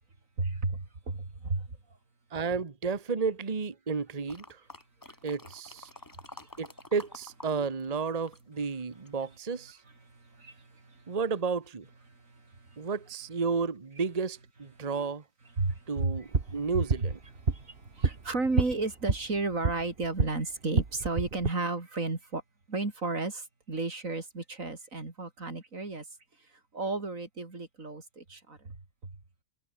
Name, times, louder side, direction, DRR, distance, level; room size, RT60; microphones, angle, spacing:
voice 1, 0.4-1.7 5.1-5.2 10.1-11.2 12.1-12.9 14.8-14.9 15.6-16.1 16.5-17.1 17.5-22.4 22.7-26.1 26.7-28.8, right 3 dB, 90° right, 4.2 m, -33 dB
voice 2, 2.3-4.6 5.2-5.9 6.6-9.8 11.1-11.9 12.8-15.2 15.9-17.2, right 5 dB, 30° right, 1.3 m, -32 dB
sound 1, 4.3-7.5 7.8-9.3 9.8-9.9, left 2 dB, 15° left, 1.7 m, -49 dB
sound 2, 16.1-20.4 20.7-21.5, right 4 dB, 50° right, 2.0 m, -30 dB
omnidirectional pair, 1.3 m